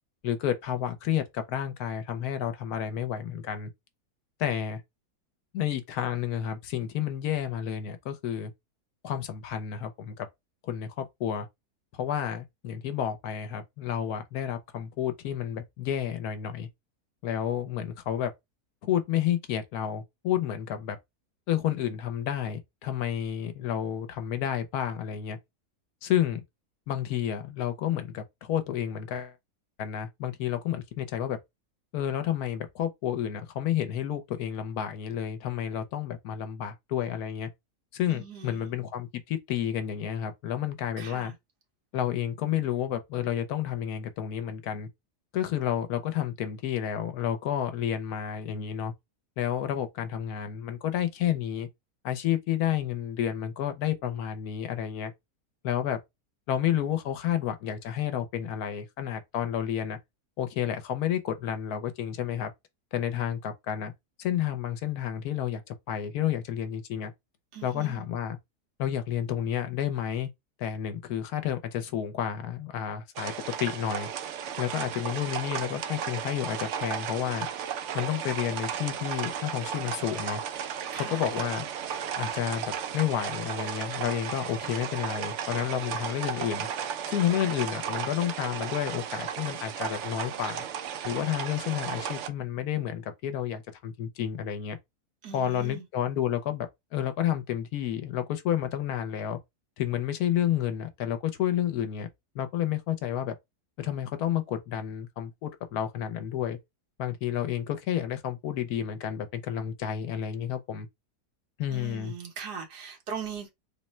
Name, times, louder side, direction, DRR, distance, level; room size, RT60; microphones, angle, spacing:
voice 1, 0.2-3.7 4.4-4.8 5.5-8.5 9.0-10.3 10.6-11.5 11.9-16.7 17.2-18.3 18.8-21.0 21.5-25.4 26.0-26.4 26.9-29.3 29.8-31.4 31.9-37.5 37.9-41.3 41.9-44.9 45.3-48.9 49.4-51.7 52.0-55.1 55.6-56.0 56.5-60.0 60.4-62.5 62.9-63.9 64.2-67.1 67.6-68.4 68.8-70.3 70.6-74.1 74.6-77.5 77.9-80.4 80.9-81.7 82.2-86.7 87.1-90.6 91.0-94.8 95.3-99.4 99.8-102.1 102.3-103.3 103.8-106.6 107.0-110.9 111.6-112.1, left 10 dB, 75° left, 1.1 m, -30 dB
voice 2, 38.1-38.7 41.0-41.3 67.5-68.0 80.9-81.2 95.2-95.8 111.7-113.5, right 7 dB, 90° right, 1.7 m, -40 dB
sound 1, 73.2-92.3, right 8 dB, 70° right, 0.7 m, -35 dB
3.6 x 2.1 x 4.1 m
omnidirectional pair, 1.7 m